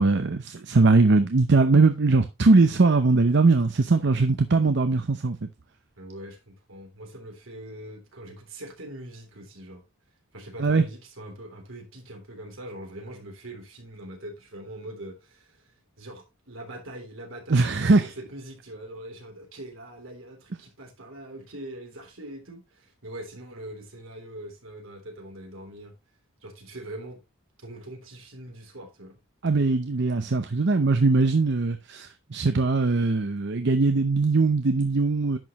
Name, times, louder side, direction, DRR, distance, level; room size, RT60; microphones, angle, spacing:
voice 1, 0.0-5.5 10.6-10.8 17.5-18.1 29.4-35.4, right 3 dB, 60° right, 0.7 m, -21 dB
voice 2, 6.0-9.8 10.3-25.9 26.4-27.2 27.6-29.2, right 1 dB, 75° right, 3.4 m, -42 dB
10.5 x 6.5 x 3.0 m
head